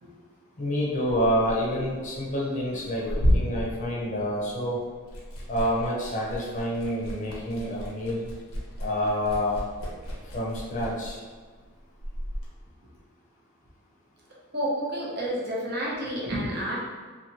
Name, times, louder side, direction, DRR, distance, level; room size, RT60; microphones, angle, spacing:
voice 1, 0.6-3.0 3.3-4.8 5.5-8.3 8.8-9.6 10.3-11.2, equal, 35° left, -5 dB, 0.7 m, -28 dB
Liquid, 0.9-4.6 4.9-12.5, equal, 80° left, 0.7 m, -32 dB
voice 2, 14.5-16.8, equal, 45° right, -4 dB, 0.7 m, -30 dB
2.8 x 2.7 x 2.8 m, 1.5 s
head